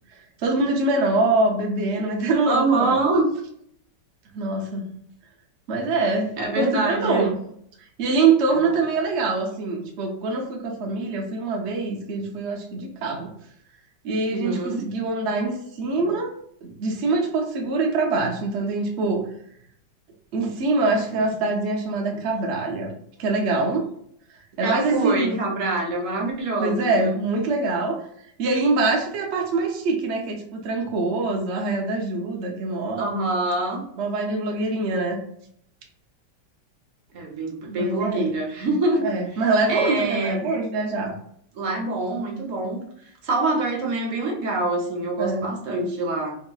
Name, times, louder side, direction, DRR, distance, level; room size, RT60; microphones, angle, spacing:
voice 1, 0.4-3.0 4.3-4.9 5.7-7.3 8.0-13.3 14.0-16.3 16.8-19.3 20.3-22.9 23.2-23.9 24.6-25.5 26.6-28.0 28.4-33.1 34.0-35.2 37.7-38.3 39.0-41.1 45.2-45.5, right 3 dB, 80° right, 1 dB, 0.6 m, -24 dB
voice 2, 2.5-3.3 6.4-7.3 8.5-8.7 14.3-14.9 24.6-27.2 33.0-33.8 37.1-39.1 39.3-40.5 41.5-42.8 43.2-46.4, right 2 dB, 60° right, 1 dB, 0.9 m, -25 dB
3.9 x 2.8 x 2.2 m, 0.67 s
omnidirectional pair, 2.0 m